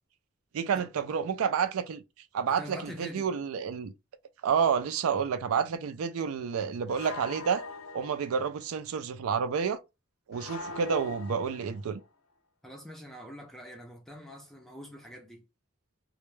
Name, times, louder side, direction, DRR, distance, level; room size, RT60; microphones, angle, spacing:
voice 1, 0.5-2.0 2.3-3.9 4.4-7.6 7.9-9.8 10.3-12.0, right 6 dB, 90° right, 0.4 m, -29 dB
voice 2, 2.5-3.3 12.6-15.4, equal, ahead, 0.4 m, -44 dB
sound 1, 4.9-5.1 6.9-8.5 10.3-12.1, left 3 dB, 80° left, 0.5 m, -42 dB
2.2 x 2.0 x 3.0 m
head